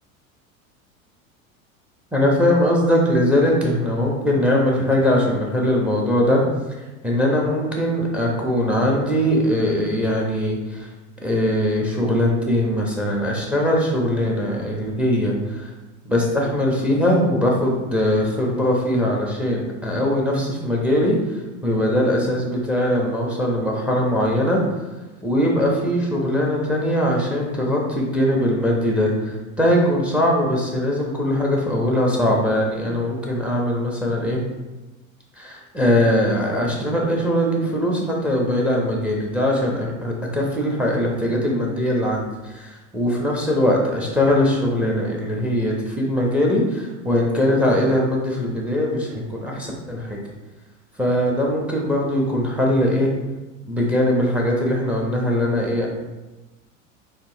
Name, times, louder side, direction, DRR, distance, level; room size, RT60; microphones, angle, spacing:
voice 1, 2.1-6.4 7.0-10.9 11.2-15.7 16.0-24.6 25.2-34.4 35.4-50.2 51.0-53.1 53.7-55.9, left 1 dB, 5° right, -1 dB, 1.1 m, -21 dB
4.4 x 3.5 x 3.0 m, 1.1 s
hypercardioid pair, 85°, 41 cm